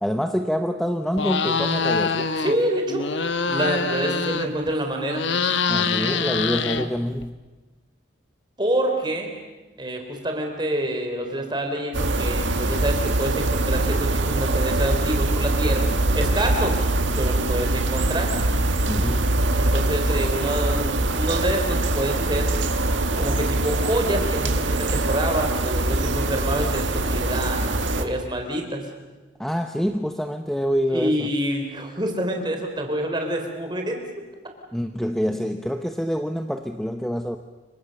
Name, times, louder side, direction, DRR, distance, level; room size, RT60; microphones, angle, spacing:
voice 1, 0.0-2.3 5.7-7.4 18.9-19.4 29.4-31.3 34.7-37.4, equal, ahead, 6 dB, 0.8 m, -26 dB
sound 1, 1.1-2.6 2.9-4.7 5.0-7.2, left 5 dB, 80° left, 1.4 m, -24 dB
voice 2, 2.4-3.1 3.4-5.3 8.6-9.3 9.8-15.9 16.1-16.8 17.1-18.3 19.5-22.5 23.2-27.6 28.0-28.9 30.9-34.0, right 1 dB, 25° right, 3 dB, 4.0 m, -27 dB
sound 2, 11.9-28.0, right 2 dB, 85° right, 1.8 m, -23 dB
29.5 x 24.5 x 6.7 m, 1.2 s
head